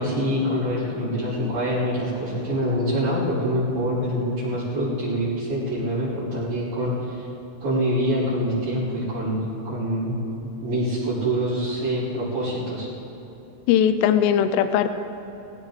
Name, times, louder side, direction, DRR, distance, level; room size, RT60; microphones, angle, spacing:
voice 1, 0.0-7.3 7.6-9.4 9.7-10.2 10.4-12.9, equal, 50° right, -12 dB, 5.8 m, -25 dB
voice 2, 13.7-14.9, left 9 dB, 85° left, 10 dB, 3.2 m, -19 dB
21.5 x 17.5 x 3.4 m, 3.0 s
omnidirectional pair, 5.8 m